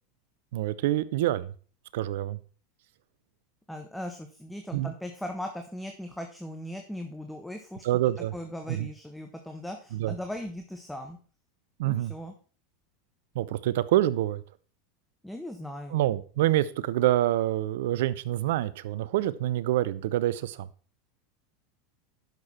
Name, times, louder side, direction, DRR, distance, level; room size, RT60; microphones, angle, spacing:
voice 1, 0.5-1.5 1.9-2.4 4.7-4.9 7.8-8.3 8.7-8.9 9.9-10.1 11.8-12.1 13.3-14.4 15.9-20.7, right 14 dB, 70° right, 18 dB, 0.7 m, -26 dB
voice 2, 3.7-7.8 8.3-11.2 11.8-12.3 15.2-16.0, left 1 dB, 5° left, 4 dB, 1.2 m, -38 dB
10.5 x 6.8 x 4.3 m, 0.41 s
hypercardioid pair, 95°, 0 cm